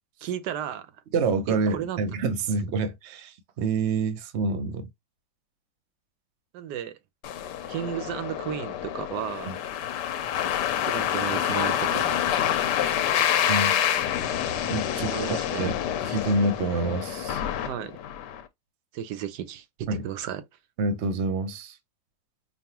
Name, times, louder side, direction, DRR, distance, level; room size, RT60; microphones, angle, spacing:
voice 1, 0.2-0.9 1.5-2.1 6.5-6.9 7.7-9.6 10.8-12.2 15.0-15.7 17.6-18.0 18.9-20.4, right 10 dB, 80° right, 1.2 m, -34 dB
voice 2, 1.1-4.9 9.5-9.6 13.5-13.8 14.7-15.8 16.0-17.4 19.9-20.0 20.8-21.8, right 3 dB, 50° right, 0.9 m, -27 dB
sound 1, 7.2-18.4, left 10 dB, 85° left, 1.3 m, -27 dB
5.3 x 2.4 x 2.9 m
omnidirectional pair, 1.8 m